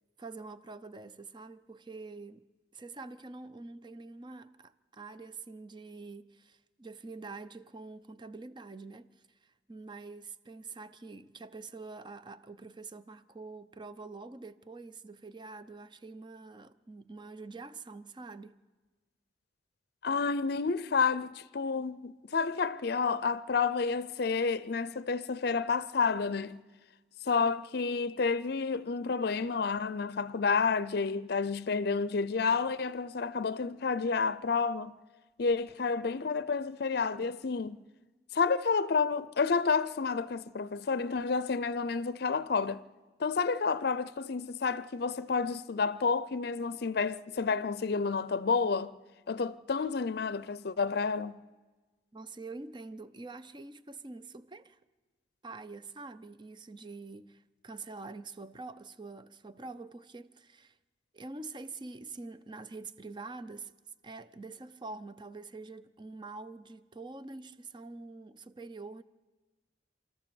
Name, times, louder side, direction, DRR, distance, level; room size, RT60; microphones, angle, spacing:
voice 1, 0.2-2.5 2.7-18.6 52.1-54.8 55.4-60.8 61.1-63.7 64.0-69.0, right 3 dB, 25° right, 0.7 m, -46 dB
voice 2, 20.0-26.6 27.2-34.9 35.4-37.8 38.3-42.8 43.2-48.9 49.3-51.4, left 5 dB, 60° left, 0.5 m, -30 dB
27.5 x 13.5 x 7.1 m
head